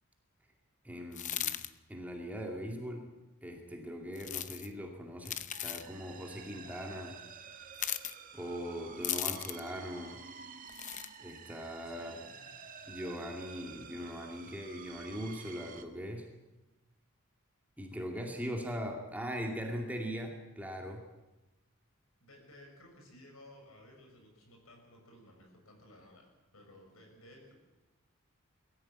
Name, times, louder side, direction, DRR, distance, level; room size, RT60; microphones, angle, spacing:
voice 1, 0.8-1.6 1.9-3.1 3.4-7.2 8.3-10.2 11.2-12.2 12.9-16.3 17.8-21.0, equal, 5° right, 1 dB, 2.3 m, -40 dB
sound 1, 1.1-1.7 4.2-4.7 5.2-5.9 7.7-8.1 9.0-9.7 10.7-11.1, left 11 dB, 35° left, 0.7 m, -36 dB
sound 2, 5.5-15.8, right 6 dB, 40° right, 1.5 m, -50 dB
voice 2, 11.9-12.3 22.2-27.5, left 1 dB, 70° left, 2 dB, 6.6 m, -56 dB
22.0 x 14.5 x 8.8 m, 1.1 s
head